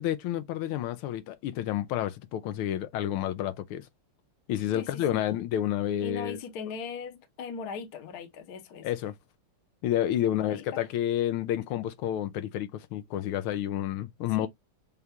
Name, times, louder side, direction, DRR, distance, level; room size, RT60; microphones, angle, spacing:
voice 1, 0.0-3.9 4.5-6.4 8.8-9.1 9.8-14.5, left 11 dB, 80° left, 1.5 m, -30 dB
voice 2, 4.7-5.3 6.0-8.9 10.3-10.8 14.3-14.5, left 6 dB, 55° left, 1.2 m, -39 dB
6.7 x 2.4 x 2.9 m
omnidirectional pair, 2.4 m